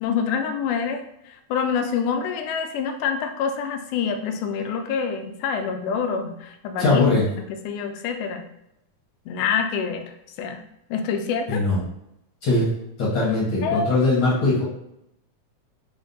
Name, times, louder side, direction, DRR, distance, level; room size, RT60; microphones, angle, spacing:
voice 1, 0.0-7.1 7.7-8.4 9.3-10.6 10.9-11.7 13.6-13.9, left 6 dB, 80° left, 6 dB, 1.9 m, -26 dB
voice 2, 6.8-7.2 11.5-11.8 12.4-12.7 13.0-14.6, left 2 dB, 65° left, -7 dB, 1.1 m, -20 dB
5.0 x 2.1 x 3.9 m, 0.82 s
omnidirectional pair, 3.6 m